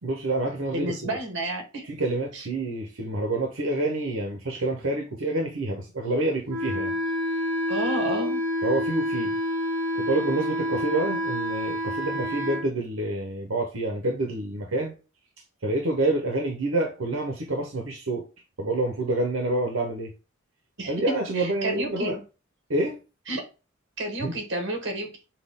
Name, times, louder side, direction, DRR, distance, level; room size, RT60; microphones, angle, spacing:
voice 1, 0.0-1.2 1.9-7.0 8.6-9.4 10.0-14.9 15.6-18.3 18.6-20.1 20.9-22.2 22.7-23.0 24.2-24.4, right 2 dB, 80° right, 0.9 m, -27 dB
voice 2, 0.7-1.9 2.3-2.4 7.7-8.4 20.8-20.9 21.3-22.2 23.3-23.4 24.0-25.1, right 2 dB, 60° right, 1.4 m, -30 dB
Wind instrument woodwind instrument, 6.5-12.6, left 1 dB, 25° right, 2.1 m, -28 dB
5.9 x 2.3 x 3.6 m
head